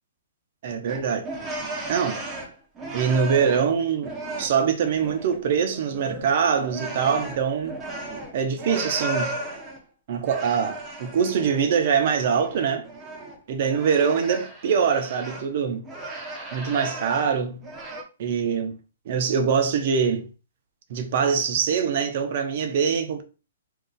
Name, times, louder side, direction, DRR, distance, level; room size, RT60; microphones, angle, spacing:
voice 1, 0.6-1.3 1.9-2.2 2.9-4.1 4.4-7.8 8.3-9.3 10.1-12.8 13.5-15.8 16.5-17.6 18.2-18.8 19.1-20.3 20.9-23.2, right 6 dB, 50° right, 0.5 m, -23 dB
sound 1, 0.9-3.7 4.0-5.4 5.7-9.8 10.2-11.7 12.0-15.5 15.8-17.4 17.6-18.0, right 2 dB, 15° right, 0.6 m, -35 dB
2.6 x 2.3 x 3.7 m
hypercardioid pair, 145°, 0 cm